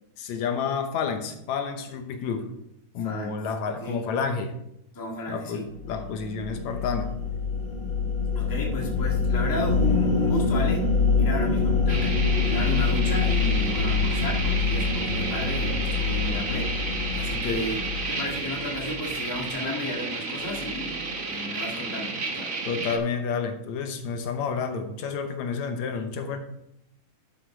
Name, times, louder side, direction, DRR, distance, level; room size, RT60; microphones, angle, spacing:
voice 1, 0.2-2.5 2.9-4.6 5.3-7.2 17.4-17.7 22.7-26.4, left 5 dB, 70° left, 6 dB, 2.1 m, -30 dB
voice 2, 3.0-3.4 3.6-4.1 4.9-5.7 8.3-10.9 11.1-16.8 17.1-17.8 18.1-22.6 25.9-26.1, left 1 dB, 10° left, -1 dB, 1.0 m, -34 dB
sound 1, 5.8-19.3, left 4 dB, 30° left, 4.5 m, -25 dB
sound 2, 11.9-23.0, right 3 dB, 60° right, 0.8 m, -32 dB
11.5 x 5.9 x 4.9 m, 0.78 s
omnidirectional pair, 3.5 m